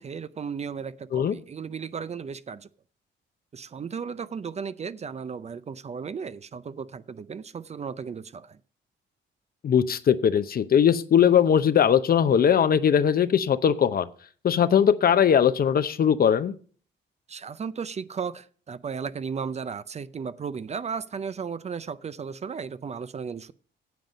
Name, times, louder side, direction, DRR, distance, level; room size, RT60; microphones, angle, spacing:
voice 1, 0.0-2.7 3.5-8.6 17.3-23.5, right 6 dB, 35° right, 0.5 m, -35 dB
voice 2, 9.6-14.1 14.4-16.5, left 8 dB, 50° left, 0.7 m, -20 dB
9.3 x 7.8 x 5.2 m
cardioid pair, 90°, 20 cm